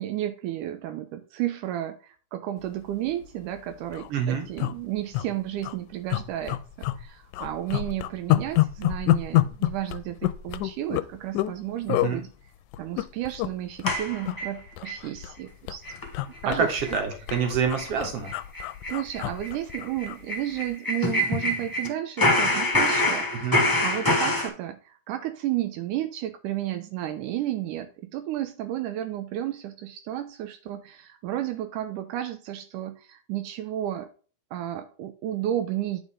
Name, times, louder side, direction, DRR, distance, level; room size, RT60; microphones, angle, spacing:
voice 1, 0.0-12.3 12.8-15.8 16.4-17.0 18.9-34.1 34.5-36.0, right 12 dB, 85° right, 7 dB, 2.2 m, -32 dB
sound 1, 3.1-3.3 3.6-3.7 3.9-4.1 4.6-5.3 5.6-5.7 6.1-7.0 7.3-11.6 11.9-12.1 12.7-13.5 13.8-14.0 14.3-15.4 15.7-20.2 20.6-20.7, left 15 dB, 80° left, 1.9 m, -27 dB
voice 2, 4.1-4.5 11.9-12.3 16.6-18.3 23.4-23.6, right 6 dB, 50° right, 3 dB, 2.7 m, -27 dB
sound 2, 13.9-15.0 15.4-15.5 15.8-16.1 16.3-16.4 16.8-17.0 17.3-17.5 17.8-17.9 18.2-21.9 22.2-24.5, left 1 dB, 15° left, 0.7 m, -25 dB
9.8 x 5.4 x 3.7 m, 0.38 s
omnidirectional pair, 3.7 m